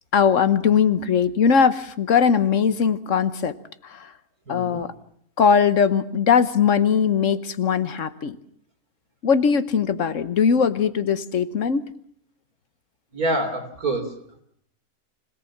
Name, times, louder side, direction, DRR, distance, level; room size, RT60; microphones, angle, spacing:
voice 1, 0.1-3.6 3.9-4.1 4.5-4.9 5.4-8.4 9.2-11.9, left 6 dB, 60° left, 13 dB, 1.4 m, -20 dB
voice 2, 4.5-4.8 13.1-14.1, right 2 dB, 90° right, 4 dB, 3.8 m, -26 dB
25.5 x 18.0 x 7.2 m, 0.69 s
omnidirectional pair, 1.5 m